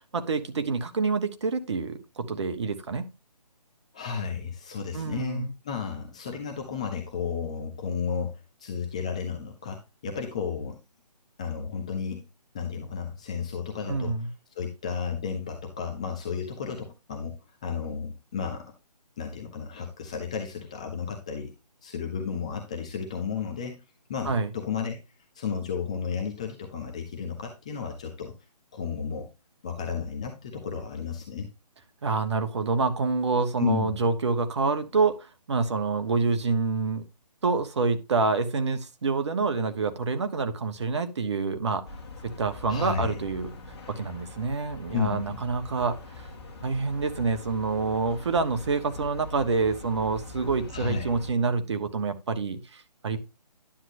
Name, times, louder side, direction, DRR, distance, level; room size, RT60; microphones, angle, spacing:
voice 1, 0.1-3.1 4.9-5.5 13.9-14.3 24.2-24.5 32.0-37.0 37.4-41.8 42.2-43.5 43.9-46.3 46.6-53.2, right 4 dB, 45° right, 9 dB, 1.1 m, -27 dB
voice 2, 3.9-10.8 11.4-12.3 12.5-14.3 14.5-18.7 19.2-21.5 21.8-23.8 24.1-25.0 25.3-28.3 28.7-29.3 29.6-31.5 33.6-34.0 42.7-43.2 44.9-45.4 50.7-51.1, left 6 dB, 10° left, 2 dB, 0.4 m, -33 dB
sound 1, 41.8-51.3, left 3 dB, 40° left, 1.9 m, -43 dB
10.0 x 7.6 x 2.5 m, 0.26 s
figure-of-eight pair, 150°, 21 cm